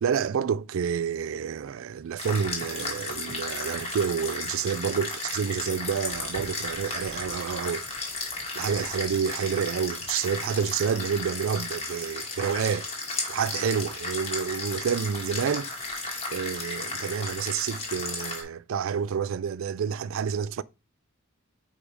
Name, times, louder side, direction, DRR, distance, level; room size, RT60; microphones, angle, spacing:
voice 1, 0.0-7.8 8.6-12.9 13.3-15.7 16.3-20.6, right 7 dB, 70° right, 0.3 m, -29 dB
sound 1, 2.2-18.4, left 3 dB, 30° left, 1.7 m, -34 dB
5.0 x 4.9 x 4.8 m
head